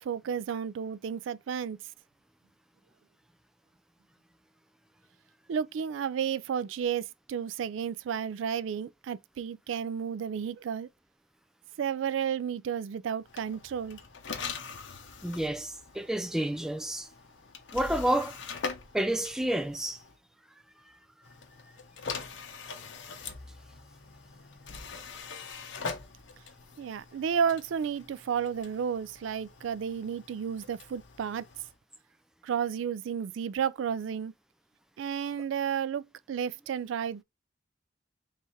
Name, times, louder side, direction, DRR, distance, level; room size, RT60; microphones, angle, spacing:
voice 1, 0.0-1.8 5.5-10.9 11.8-14.0 26.8-31.4 32.4-34.3 35.0-37.2, right 7 dB, 80° right, 0.3 m, -32 dB
sound 1, 13.2-20.2 21.2-31.8, left 5 dB, 75° left, 0.8 m, -43 dB
voice 2, 15.2-17.1 17.7-18.4 18.9-20.0, right 1 dB, 5° right, 0.3 m, -29 dB
3.4 x 3.2 x 4.1 m
head